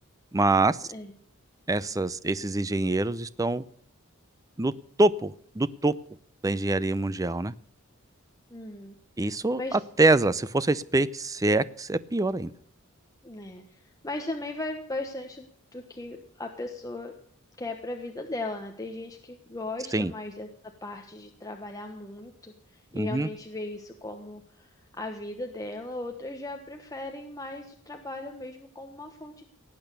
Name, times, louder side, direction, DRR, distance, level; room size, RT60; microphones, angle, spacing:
voice 1, 0.3-0.9 1.7-3.6 4.6-4.7 5.0-5.9 6.4-7.5 9.2-9.6 10.0-12.5 19.9-20.1 22.9-23.3, right 2 dB, 15° right, 0.5 m, -25 dB
voice 2, 8.5-8.9 9.5-9.8 13.2-15.5 15.7-17.1 17.6-20.5 20.8-29.4, left 2 dB, 15° left, 1.2 m, -37 dB
18.0 x 8.9 x 6.8 m
head